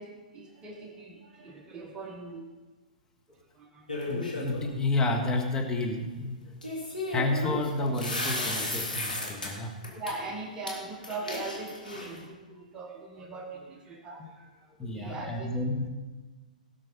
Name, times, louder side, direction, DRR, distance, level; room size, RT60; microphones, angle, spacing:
voice 1, 0.0-2.5 3.3-4.4 6.5-6.6 9.3-15.5, right 3 dB, 20° right, 2 dB, 1.5 m, -41 dB
sound 1, 3.9-4.6 6.6-9.5 9.8-10.1 10.7-10.8 11.0-12.2, left 2 dB, 90° left, 2.9 m, -34 dB
voice 2, 4.1-6.4 7.1-9.8 14.2-14.3 14.8-15.9, left 2 dB, 15° left, 1 dB, 1.8 m, -30 dB
17.5 x 6.4 x 5.5 m, 1.3 s
figure-of-eight pair, 120°, 4 cm